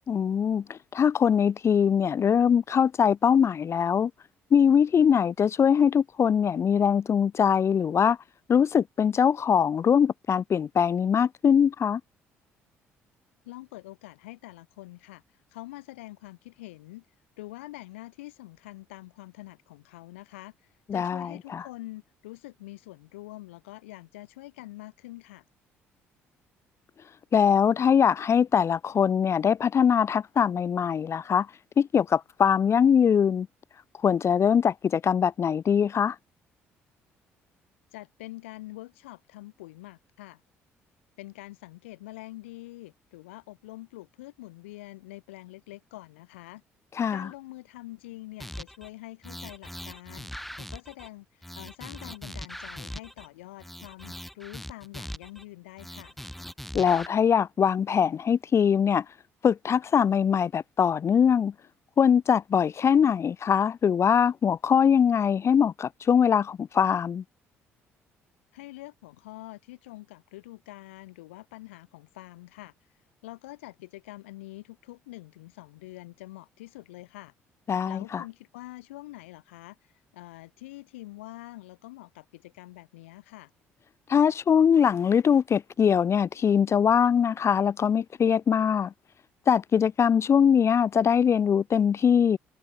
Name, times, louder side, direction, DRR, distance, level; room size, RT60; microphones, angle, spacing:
voice 1, 0.1-4.1 4.5-8.2 8.5-12.0 20.9-21.6 27.3-31.5 31.8-33.5 34.0-36.2 47.0-47.3 56.7-59.0 59.4-61.5 62.0-67.2 77.7-78.2 84.1-88.9 89.5-92.4, left 7 dB, 45° left, 0.7 m, -22 dB
voice 2, 13.5-17.1 17.4-25.4 37.9-40.4 41.2-46.6 47.1-50.3 50.6-56.2 68.5-72.7 73.2-77.3 77.9-83.5, left 19 dB, 80° left, 3.5 m, -45 dB
sound 1, 48.4-48.9 49.2-51.1 51.4-53.3 53.6-55.4 55.8-57.1, equal, ahead, 3.6 m, -40 dB
hypercardioid pair, 50°, 7 cm